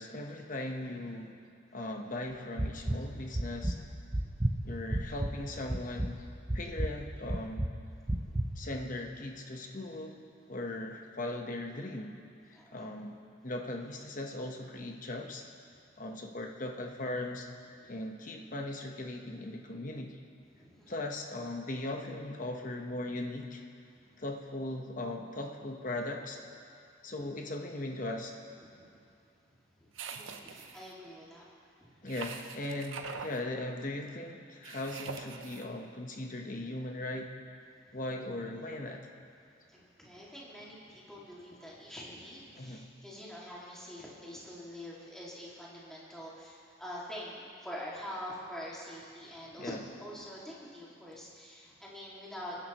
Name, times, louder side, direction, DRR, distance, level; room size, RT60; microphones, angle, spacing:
voice 1, 0.0-1.4 1.7-3.8 4.6-6.2 6.5-7.7 8.6-10.2 10.5-12.2 12.4-13.2 13.4-15.5 16.0-17.5 17.9-20.2 20.9-23.6 24.2-26.4 27.0-28.3 32.0-37.4 37.9-39.1 42.5-42.9 49.6-49.8, left 1 dB, 40° left, 2 dB, 1.0 m, -38 dB
sound 1, 2.6-3.0 3.3-3.8 4.1-5.4 5.7-6.1 6.5-6.9 7.3-7.7 8.1-8.5, right 1 dB, 20° right, 0.6 m, -30 dB
voice 2, 4.0-4.3 8.1-8.4 12.5-12.9 15.7-15.9 20.5-20.9 23.9-24.0 28.7-28.9 29.8-31.4 31.8-31.9 39.7-52.6, equal, 5° left, -7 dB, 2.2 m, -46 dB
sound 2, 29.9-30.9 32.1-33.4 34.6-35.6, right 5 dB, 80° right, 0.8 m, -43 dB
23.5 x 11.0 x 3.0 m, 2.4 s
head